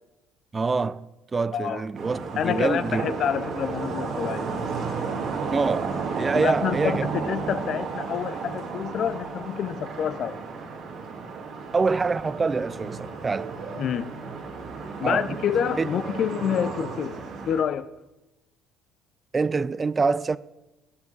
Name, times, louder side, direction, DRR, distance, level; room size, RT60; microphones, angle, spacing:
voice 1, 0.5-3.0 5.5-7.1 11.7-13.5 15.0-15.4 15.8-15.9 19.3-20.4, right 4 dB, 25° right, 0.4 m, -25 dB
sound 1, 1.9-17.6, right 4 dB, 60° right, 1.8 m, -33 dB
voice 2, 2.4-4.5 6.3-10.4 13.8-14.1 15.0-17.9, left 8 dB, 55° left, 0.5 m, -28 dB
17.0 x 5.8 x 4.0 m
supercardioid pair, 80°, 0 cm